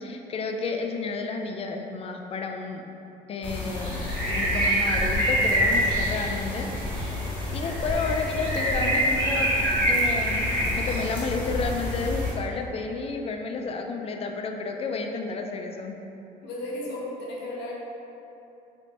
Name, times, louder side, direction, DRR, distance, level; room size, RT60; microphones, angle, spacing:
voice 1, 0.0-2.8 3.3-6.7 7.5-9.6 9.9-16.0, left 4 dB, 35° left, 3 dB, 0.3 m, -31 dB
sound 1, 3.4-12.3, equal, 5° left, 1.4 m, -26 dB
voice 2, 16.4-17.7, left 1 dB, 85° left, -5 dB, 0.9 m, -34 dB
3.2 x 2.6 x 4.0 m, 2.8 s
cardioid pair, 110°, 17 cm